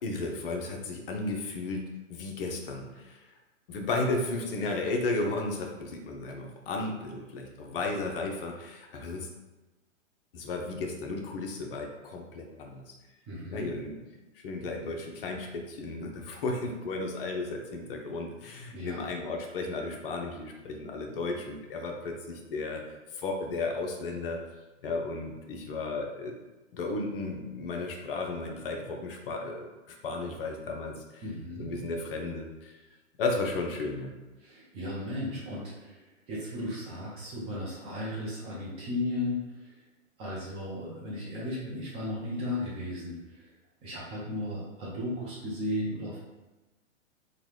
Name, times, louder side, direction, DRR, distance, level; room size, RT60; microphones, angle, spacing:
voice 1, 0.0-3.3 3.7-9.3 10.3-12.9 13.5-14.0 14.3-24.4 24.8-26.4 26.7-31.2 31.6-32.8 33.2-34.1, left 3 dB, 45° left, 1 dB, 0.6 m, -34 dB
voice 2, 13.3-13.7 18.7-19.0 31.2-31.7 34.4-39.8 40.2-43.5 43.8-46.2, left 1 dB, 15° right, -6 dB, 0.5 m, -35 dB
3.8 x 2.2 x 3.1 m, 1.1 s
hypercardioid pair, 125°, 38 cm